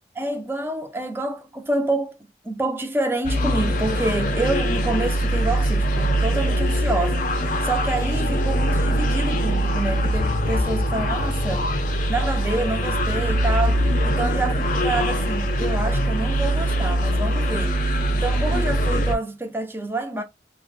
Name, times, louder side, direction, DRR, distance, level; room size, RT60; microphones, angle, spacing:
voice 1, 0.2-2.2 2.4-11.7 12.1-20.2, right 2 dB, 15° right, 0.4 m, -28 dB
sound 1, 3.2-19.1, equal, 45° left, 0.4 m, -22 dB
2.4 x 2.1 x 3.1 m
head